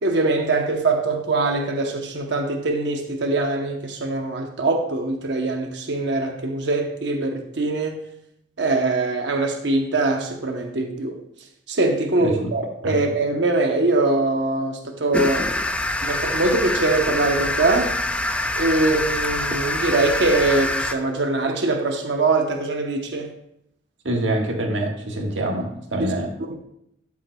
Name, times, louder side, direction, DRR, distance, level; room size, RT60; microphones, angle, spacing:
voice 1, 0.0-8.0 8.6-11.2 11.7-15.5 16.0-17.9 18.6-23.3 26.0-26.1 26.5-26.6, right 2 dB, 65° right, 3 dB, 0.9 m, -22 dB
voice 2, 12.2-12.5 12.8-13.0 24.0-26.3, right 1 dB, 85° right, 1 dB, 1.5 m, -25 dB
sound 1, 15.1-20.9, left 1 dB, 5° left, 0.4 m, -25 dB
12.0 x 7.2 x 2.3 m, 0.75 s
head